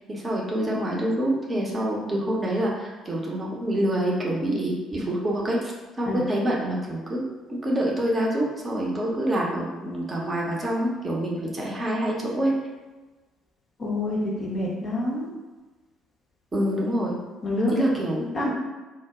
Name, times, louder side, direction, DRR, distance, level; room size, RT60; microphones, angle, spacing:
voice 1, 0.0-5.7 6.0-7.2 7.5-12.5 16.5-17.1 17.7-18.5, right 1 dB, 25° right, -3 dB, 0.6 m, -26 dB
voice 2, 13.8-15.3 17.4-17.8 18.2-18.5, left 1 dB, 35° left, -4 dB, 0.4 m, -27 dB
2.0 x 2.0 x 3.5 m, 1.2 s
figure-of-eight pair, 50°, 0 cm